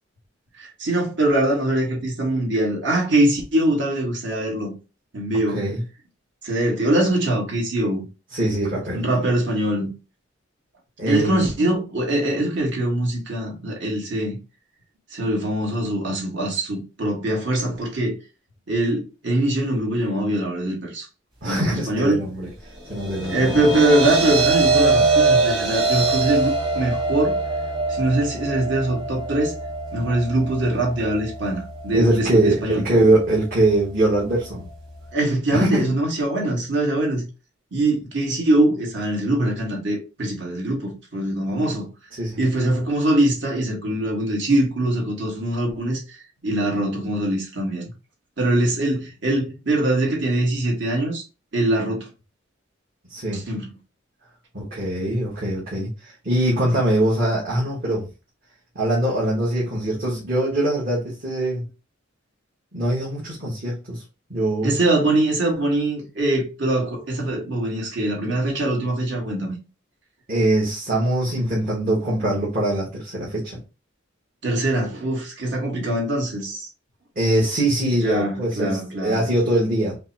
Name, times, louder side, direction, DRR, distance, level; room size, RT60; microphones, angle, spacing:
voice 1, 0.6-4.7 5.1-5.7 6.4-8.0 8.9-9.9 11.1-14.4 15.1-18.1 18.7-21.1 21.4-22.2 23.3-27.4 27.9-29.5 29.9-32.8 35.1-37.2 37.7-41.9 42.4-46.2 46.4-47.8 48.4-51.2 51.5-52.1 53.3-53.7 64.6-69.6 74.4-76.7 77.9-79.2, right 1 dB, 60° right, 1.5 m, -23 dB
voice 2, 8.3-9.1 11.0-11.4 21.4-22.5 22.9-23.6 31.9-34.6 35.5-35.8 42.1-42.4 53.1-53.4 54.5-58.1 58.7-61.6 62.7-64.0 64.3-64.8 70.3-73.6 77.1-80.0, right 1 dB, 45° right, 1.3 m, -22 dB
sound 1, 22.8-35.1, right 3 dB, 25° right, 1.2 m, -24 dB
5.1 x 2.1 x 2.7 m
head